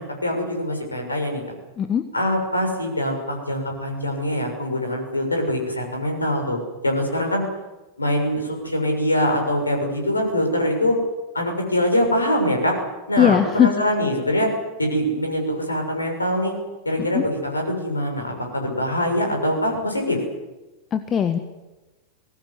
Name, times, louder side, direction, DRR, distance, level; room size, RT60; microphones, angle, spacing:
voice 1, 0.0-1.4 2.1-6.6 6.8-7.4 8.0-11.0 11.3-12.8 13.1-14.5 14.8-16.5 16.8-20.2, equal, 80° left, 3 dB, 6.8 m, -23 dB
voice 2, 13.2-13.7 17.0-17.2 20.9-21.4, left 9 dB, 25° left, 8 dB, 1.5 m, -19 dB
21.5 x 18.0 x 9.7 m, 1.1 s
figure-of-eight pair, 90°, 0 cm